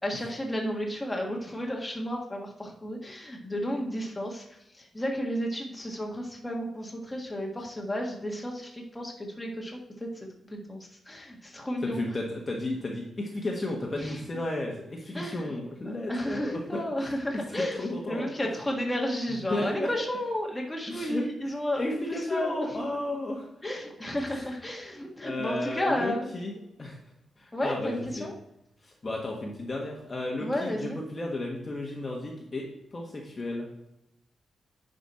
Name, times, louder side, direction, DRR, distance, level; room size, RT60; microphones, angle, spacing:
voice 1, 0.0-4.4 4.8-10.1 10.5-10.8 11.1-12.0 13.9-14.2 15.1-15.5 15.9-17.8 18.1-22.9 23.6-26.3 27.5-28.3 30.4-31.0, equal, 10° left, -1 dB, 1.5 m, -32 dB
voice 2, 11.8-18.3 19.3-19.9 20.9-23.5 24.3-24.4 25.2-26.5 26.8-27.0 27.4-28.3 28.8-33.7, left 2 dB, 25° left, -1 dB, 1.3 m, -33 dB
10.0 x 5.1 x 4.2 m, 0.82 s
wide cardioid pair, 140°, 0 cm